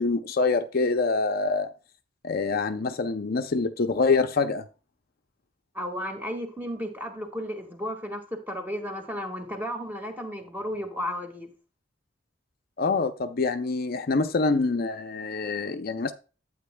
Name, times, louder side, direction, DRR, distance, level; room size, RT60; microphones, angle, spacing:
voice 1, 0.0-1.7 2.2-4.6 12.8-16.1, left 4 dB, 50° left, 0.6 m, -25 dB
voice 2, 5.7-8.2 8.5-11.5, equal, 10° right, 1.7 m, -33 dB
11.5 x 8.5 x 2.2 m
head